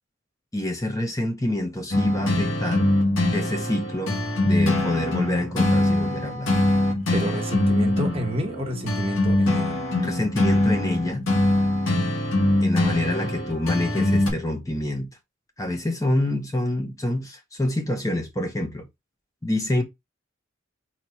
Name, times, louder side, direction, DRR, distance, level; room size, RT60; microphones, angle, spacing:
voice 1, 0.5-2.9 3.3-4.2 4.4-6.5 10.0-11.2 12.6-15.1 15.6-18.9 19.4-19.8, left 1 dB, 15° left, 0.7 m, -26 dB
sound 1, 1.9-14.3, left 1 dB, 85° left, 1.5 m, -23 dB
voice 2, 7.1-9.8 13.2-13.3, equal, 30° right, 1.2 m, -29 dB
4.5 x 2.9 x 4.1 m
head